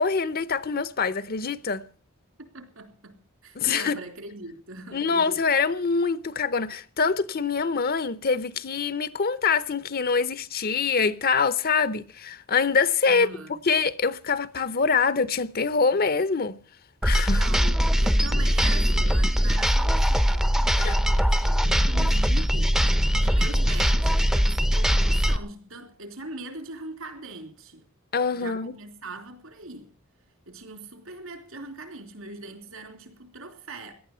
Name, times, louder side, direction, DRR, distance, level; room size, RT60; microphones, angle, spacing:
voice 1, 0.0-1.8 3.6-4.0 4.9-13.3 13.7-16.6 17.0-17.4 20.8-21.0 28.1-28.7, left 5 dB, 45° left, 0.8 m, -24 dB
voice 2, 2.5-5.4 13.1-13.6 17.3-27.8 28.3-29.9 30.5-33.9, right 2 dB, 75° right, 3.6 m, -41 dB
sound 1, 17.0-25.4, equal, ahead, 0.6 m, -21 dB
17.5 x 12.0 x 5.6 m
head